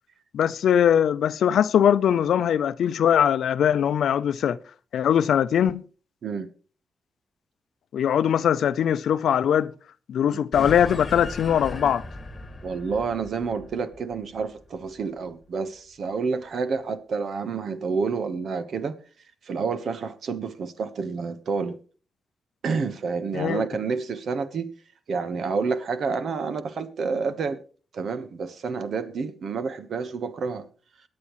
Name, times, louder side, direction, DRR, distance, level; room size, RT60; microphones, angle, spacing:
voice 1, 0.3-4.6 4.9-5.8 7.9-9.7 10.1-12.0 23.3-23.6, left 9 dB, 80° left, 0.6 m, -21 dB
sound 1, 10.5-15.3, left 2 dB, 30° left, 1.6 m, -37 dB
voice 2, 12.6-19.0 19.4-21.8 22.6-24.7 25.1-27.6 27.9-30.7, right 5 dB, 65° right, 1.2 m, -29 dB
22.5 x 8.5 x 3.1 m
cardioid pair, 105°, 0 cm